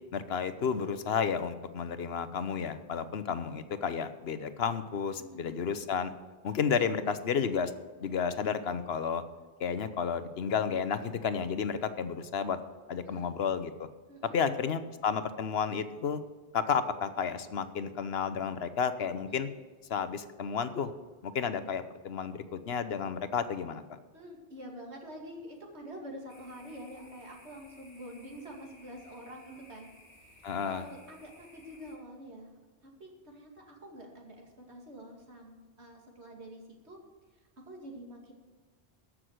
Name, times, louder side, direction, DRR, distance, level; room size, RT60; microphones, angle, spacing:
voice 1, 0.1-6.1 6.4-7.7 8.0-9.2 9.6-12.6 12.9-13.9 14.3-16.2 16.5-19.5 19.9-20.9 21.2-24.0 30.4-30.9, left 6 dB, 70° left, 12 dB, 1.0 m, -32 dB
voice 2, 5.2-5.7 13.0-13.4 14.1-14.7 19.3-19.4 24.1-29.9 30.3-32.5 32.8-37.0 37.7-38.3, equal, 80° right, 0 dB, 2.7 m, -47 dB
sound 1, 26.3-32.0, left 1 dB, 35° left, 3.0 m, -57 dB
14.0 x 6.3 x 8.0 m, 1.4 s
omnidirectional pair, 1.1 m